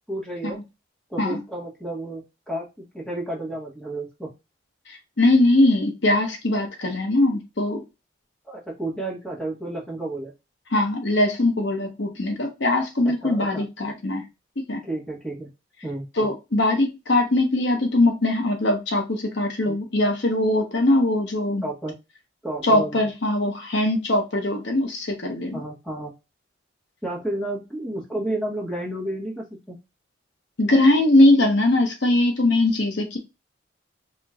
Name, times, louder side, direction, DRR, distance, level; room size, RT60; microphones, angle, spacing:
voice 1, 0.1-0.6 1.1-4.3 8.4-10.3 13.0-13.6 14.8-15.5 15.8-16.1 19.7-19.8 21.6-21.9 22.4-23.0 25.5-26.1 27.0-29.8, right 1 dB, 5° left, -3 dB, 1.3 m, -31 dB
voice 2, 4.9-7.8 10.7-14.2 14.6-14.8 16.2-21.6 22.6-25.6 30.6-33.2, left 1 dB, 65° left, 3 dB, 1.0 m, -21 dB
4.4 x 2.9 x 2.4 m, 0.25 s
head